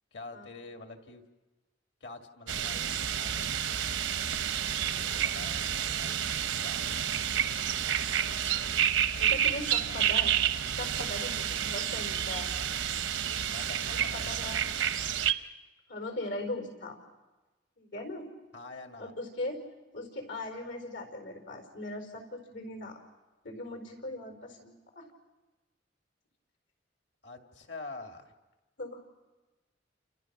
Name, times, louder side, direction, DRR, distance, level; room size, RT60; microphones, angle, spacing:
voice 1, 0.1-1.2 2.0-3.7 4.9-6.1 6.6-7.3 13.4-14.6 18.5-19.1 27.2-28.3, left 3 dB, 65° left, 4 dB, 2.2 m, -46 dB
sound 1, 2.5-15.3, right 9 dB, 80° right, 0.8 m, -30 dB
voice 2, 9.2-10.4 10.8-12.5 13.9-14.6 15.9-17.0 17.8-18.3 19.0-19.6 19.9-23.0 23.4-25.1 28.8-29.0, left 1 dB, 85° left, 5 dB, 4.9 m, -39 dB
29.5 x 29.5 x 6.0 m, 1.2 s
head